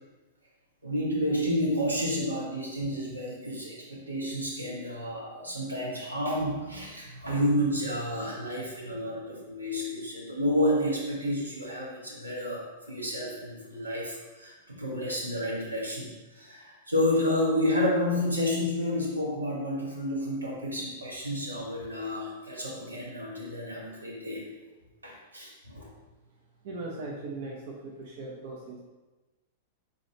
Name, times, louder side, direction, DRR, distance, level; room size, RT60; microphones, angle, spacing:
voice 1, 0.8-24.4 25.0-25.9, left 1 dB, 85° right, -3 dB, 1.2 m, -30 dB
voice 2, 26.6-28.8, right 2 dB, 55° right, -3 dB, 0.7 m, -39 dB
4.2 x 3.9 x 3.2 m, 1.1 s
figure-of-eight pair, 100°, 0 cm